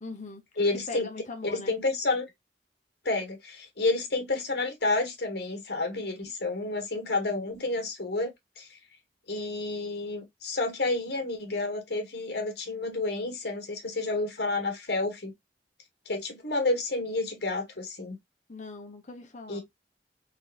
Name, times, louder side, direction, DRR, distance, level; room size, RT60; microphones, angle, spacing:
voice 1, 0.0-0.4 0.9-1.8 18.5-19.6, left 3 dB, 45° left, 1.0 m, -40 dB
voice 2, 0.6-1.1 1.4-2.3 3.0-8.7 9.3-15.3 16.0-18.2 19.5-19.6, left 2 dB, 65° left, 1.4 m, -30 dB
3.9 x 3.4 x 2.4 m
head